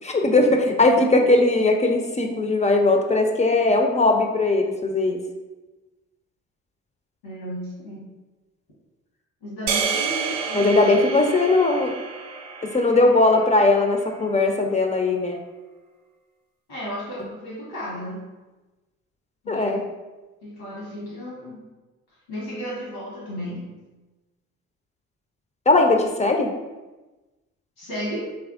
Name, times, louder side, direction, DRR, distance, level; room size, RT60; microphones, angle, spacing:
voice 1, 0.0-5.2 10.5-11.9 12.6-15.4 19.5-19.8 25.7-26.5, left 2 dB, 20° left, 3 dB, 0.4 m, -19 dB
voice 2, 7.2-8.1 9.4-11.4 16.7-18.3 19.4-19.9 20.4-21.7 22.3-23.8 27.8-28.2, equal, 90° left, -6 dB, 1.1 m, -34 dB
sound 1, 9.7-14.0, right 5 dB, 75° right, 0.5 m, -30 dB
3.4 x 3.2 x 2.4 m, 1.1 s
hypercardioid pair, 45°, 40 cm